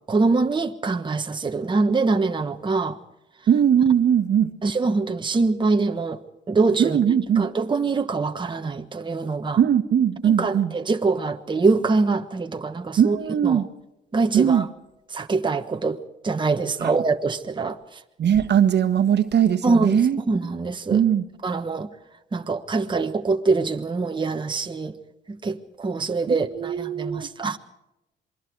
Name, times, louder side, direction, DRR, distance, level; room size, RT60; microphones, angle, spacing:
voice 1, 0.1-3.0 4.6-6.2 6.5-7.0 7.4-9.6 10.2-13.2 13.4-13.6 14.1-14.6 15.1-17.8 19.6-20.0 20.3-21.0 21.4-21.9 22.3-24.9 25.3-27.6, right 3 dB, 25° right, 1.3 m, -24 dB
voice 2, 3.5-4.5 6.8-7.5 9.6-10.7 13.0-13.7 14.3-14.7 16.8-16.9 18.2-20.2 20.9-21.3 26.3-27.3, right 9 dB, 60° right, 1.5 m, -20 dB
27.5 x 22.5 x 4.7 m
cardioid pair, 90°, 20 cm